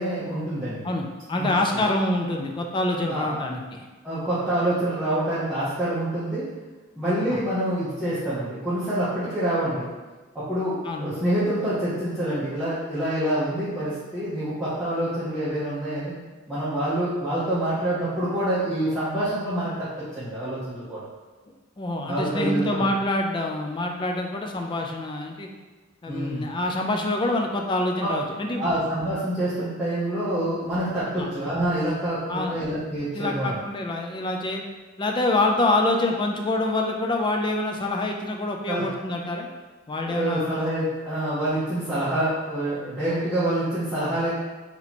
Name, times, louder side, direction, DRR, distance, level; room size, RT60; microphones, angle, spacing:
voice 1, 0.0-0.9 1.4-1.8 3.1-3.4 4.0-6.4 6.9-9.9 10.3-16.1 16.5-21.0 22.1-22.9 26.1-26.5 28.0-28.1 28.6-33.6 38.7-38.9 40.0-44.3, right 1 dB, 5° right, -13 dB, 0.8 m, -26 dB
voice 2, 0.8-3.9 7.3-7.4 10.8-11.1 21.8-25.5 26.0-28.7 31.2-31.3 32.3-32.6 33.1-34.6 35.0-39.5 39.9-40.7 43.1-43.2, left 2 dB, 25° left, 2 dB, 0.3 m, -26 dB
2.9 x 2.8 x 4.1 m, 1.3 s
head